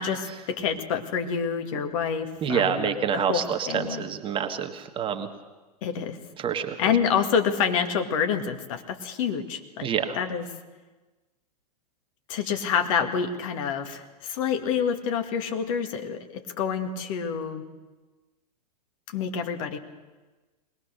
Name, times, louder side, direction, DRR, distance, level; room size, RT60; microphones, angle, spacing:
voice 1, 0.0-4.1 5.8-6.2 6.8-9.9 10.2-10.5 12.3-17.6 19.1-19.8, left 7 dB, 50° left, 5 dB, 2.2 m, -27 dB
voice 2, 2.4-5.3 6.4-6.8 9.8-10.2, right 7 dB, 25° right, 5 dB, 1.6 m, -27 dB
21.5 x 19.0 x 6.7 m, 1.2 s
figure-of-eight pair, 100°, 21 cm